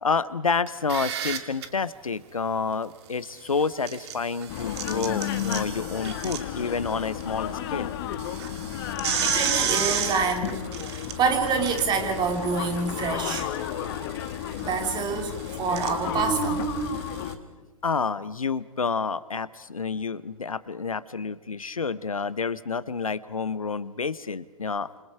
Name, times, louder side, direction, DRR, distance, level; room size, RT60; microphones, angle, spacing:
voice 1, 0.0-7.9 17.8-24.9, left 5 dB, 80° left, 17 dB, 1.0 m, -29 dB
sound 1, 0.7-1.7 3.6-7.2 7.6-7.7 8.1-17.3, right 9 dB, 50° right, 2.4 m, -33 dB
sound 2, 4.5-17.4, left 11 dB, 45° left, 1.5 m, -33 dB
voice 2, 9.2-13.5 14.6-17.1, right 5 dB, 25° right, 4 dB, 3.5 m, -27 dB
30.0 x 27.5 x 4.8 m, 1.3 s
figure-of-eight pair, 105°, 18 cm